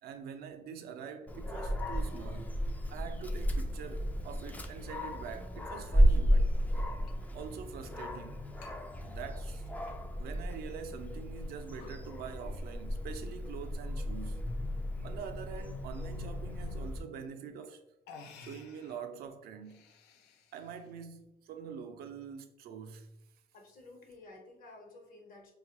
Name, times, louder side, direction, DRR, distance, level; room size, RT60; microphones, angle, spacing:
voice 1, 0.0-2.6 2.9-6.5 7.3-8.5 9.0-9.6 10.2-14.5 15.0-17.8 18.4-19.9 20.5-23.2, right 7 dB, 65° right, 0.4 m, -45 dB
Dog, 1.3-17.0, equal, 10° left, 0.3 m, -33 dB
sound 1, 7.1-7.2 7.5-7.6 8.6-8.8 9.2-10.0 10.5-10.6 11.2-11.4 11.7-12.0 13.3-13.8 14.6-15.0 16.9-17.0 17.6-17.7 18.0-19.0 19.5-20.9, left 5 dB, 85° left, 0.5 m, -54 dB
voice 2, 23.5-25.5, left 2 dB, 55° left, 1.0 m, -53 dB
4.3 x 2.3 x 2.9 m
cardioid pair, 110°, 17 cm